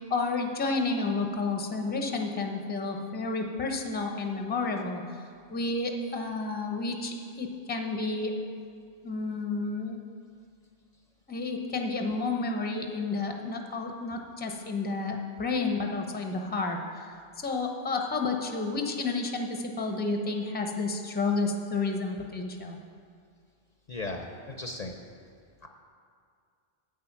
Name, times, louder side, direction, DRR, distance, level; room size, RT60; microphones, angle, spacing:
voice 1, 0.0-5.0 5.5-8.3 9.0-10.0 11.3-17.1 17.4-22.8, left 3 dB, 10° left, 3 dB, 0.6 m, -31 dB
voice 2, 23.9-25.0 25.6-25.7, left 2 dB, 45° left, 3 dB, 0.7 m, -36 dB
8.5 x 8.4 x 5.8 m, 2.2 s
omnidirectional pair, 1.0 m